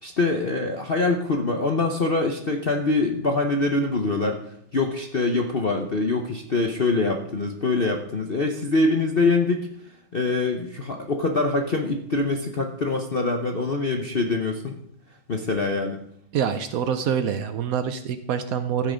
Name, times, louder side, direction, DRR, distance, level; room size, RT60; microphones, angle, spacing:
voice 1, 0.0-4.4 4.7-9.7 10.1-14.8 15.3-16.0, left 3 dB, 60° left, 3 dB, 0.5 m, -24 dB
voice 2, 16.3-18.9, right 8 dB, 85° right, 9 dB, 0.7 m, -26 dB
14.5 x 8.6 x 5.1 m, 0.74 s
omnidirectional pair, 2.4 m